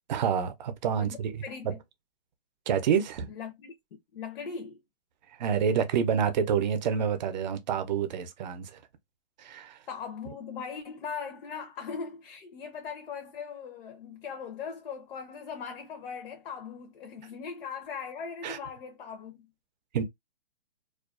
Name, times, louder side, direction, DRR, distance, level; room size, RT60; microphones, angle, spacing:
voice 1, 0.1-1.7 2.7-3.3 5.4-8.8 9.4-9.8 18.4-18.6 19.9-20.0, right 7 dB, 50° right, 0.5 m, -28 dB
voice 2, 1.0-1.8 3.3-3.7 4.1-4.8 9.9-19.5, left 6 dB, 65° left, 0.6 m, -39 dB
2.4 x 2.2 x 2.3 m
hypercardioid pair, 145°, 30 cm